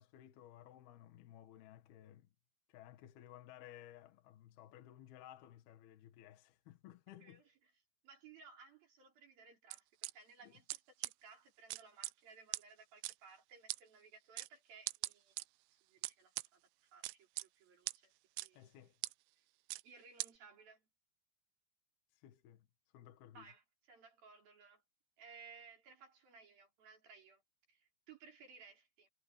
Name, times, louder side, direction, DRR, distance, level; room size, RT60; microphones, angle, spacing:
voice 1, 0.0-2.3 2.7-7.4 10.4-10.6 18.5-19.0 22.1-22.7 22.9-23.5, left 12 dB, 65° left, 3.3 m, -57 dB
voice 2, 7.2-7.7 8.0-9.9 10.1-15.4 15.7-18.1 18.4-18.6 19.8-20.9 23.3-24.8 25.2-27.4 27.7-29.1, right 5 dB, 55° right, 6.3 m, -60 dB
sound 1, 9.7-10.1 10.7-10.8 11.0-11.1 11.7-12.1 12.5-12.6 13.0-13.1 13.7-13.8 14.4-14.5 14.9-15.4 16.0-16.5 17.0-17.5 17.9-18.0 18.4-18.5 19.0-19.1 19.7-19.8 20.2-20.3, right 22 dB, 85° right, 2.8 m, -40 dB
omnidirectional pair, 5.1 m